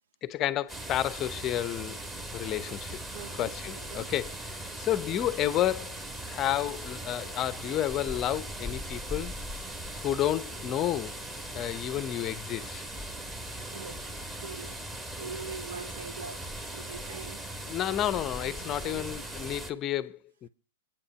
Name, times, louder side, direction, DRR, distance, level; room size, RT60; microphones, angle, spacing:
voice 1, 0.2-2.0 2.3-3.0 3.4-6.0 6.2-9.4 10.0-11.1 11.5-12.8 17.7-20.5, left 12 dB, 25° left, 0.7 m, -31 dB
sound 1, 0.7-19.7, right 1 dB, 10° right, 1.5 m, -39 dB
voice 2, 3.1-4.1 12.0-12.1 13.7-14.0 14.4-14.8 15.2-16.4 16.7-17.4 18.8-19.0, right 5 dB, 75° right, 2.2 m, -43 dB
23.5 x 8.9 x 5.7 m
hypercardioid pair, 160°, 0 cm